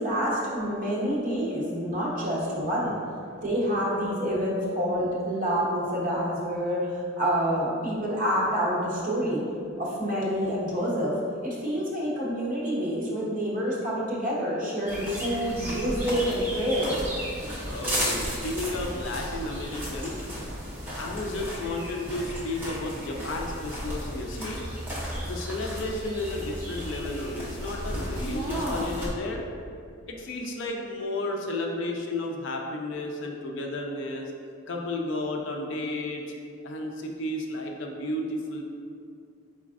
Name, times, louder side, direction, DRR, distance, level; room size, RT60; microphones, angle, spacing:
voice 1, 0.0-3.0 3.4-6.8 7.2-9.4 9.8-11.2 11.4-17.0 28.3-28.9, equal, 40° right, -5 dB, 0.8 m, -27 dB
sound 1, 14.9-29.1, equal, 10° right, 0.7 m, -34 dB
voice 2, 17.7-20.2 21.0-24.6 25.2-29.4 30.1-34.3 34.7-36.2 36.6-38.6, left 2 dB, 65° left, 1 dB, 0.4 m, -32 dB
4.2 x 4.0 x 2.4 m, 2.3 s
head